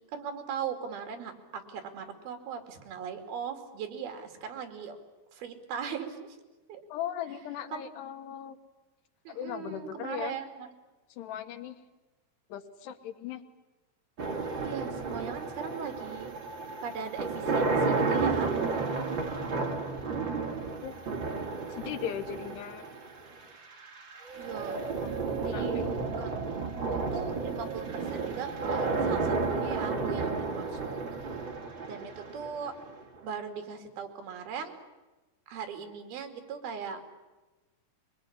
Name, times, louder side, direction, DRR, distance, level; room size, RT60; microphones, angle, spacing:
voice 1, 0.1-5.0 5.3-6.4 6.7-6.8 7.7-7.8 9.3-10.7 14.6-16.3 16.8-18.6 24.4-24.8 25.4-26.3 26.9-31.0 31.8-32.7 33.2-34.7 35.5-37.1, right 7 dB, 70° right, 6 dB, 4.3 m, -39 dB
voice 2, 6.9-8.6 9.3-10.4 11.1-11.8 12.5-13.4 20.8-20.9 21.7-22.9 24.8-25.1 25.4-25.9, left 10 dB, 90° left, 8 dB, 3.5 m, -38 dB
sound 1, 14.2-33.2, right 4 dB, 35° right, 2.5 m, -32 dB
23.0 x 22.5 x 10.0 m, 1.1 s
omnidirectional pair, 4.7 m